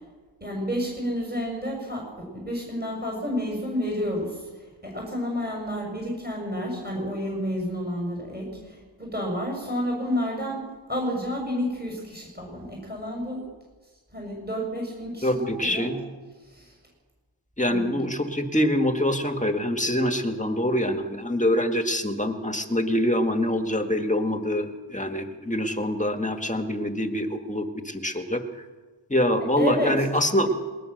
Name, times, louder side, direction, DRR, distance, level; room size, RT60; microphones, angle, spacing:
voice 1, 0.4-4.5 4.8-13.4 14.1-15.9 16.5-16.7 17.7-18.0 29.5-29.9, equal, 20° right, -1 dB, 6.7 m, -30 dB
voice 2, 15.2-16.0 17.6-28.4 29.1-30.5, left 1 dB, 15° left, 6 dB, 1.9 m, -25 dB
21.0 x 20.0 x 6.7 m, 1.3 s
wide cardioid pair, 110°, 46 cm